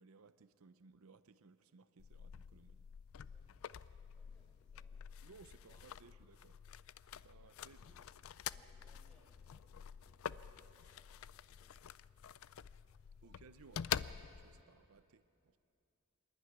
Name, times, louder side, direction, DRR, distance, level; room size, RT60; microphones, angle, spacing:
voice 1, 0.0-2.9 5.2-6.6 7.0-8.1 13.2-15.6, right 4 dB, 80° right, 12 dB, 0.6 m, -62 dB
sound 1, 2.0-14.6, left 9 dB, 70° left, 0.4 m, -47 dB
voice 2, 3.2-6.0 7.1-7.9 8.4-12.7 13.2-14.1, equal, 5° left, -2 dB, 4.6 m, -75 dB
25.5 x 11.5 x 9.6 m, 2.7 s
head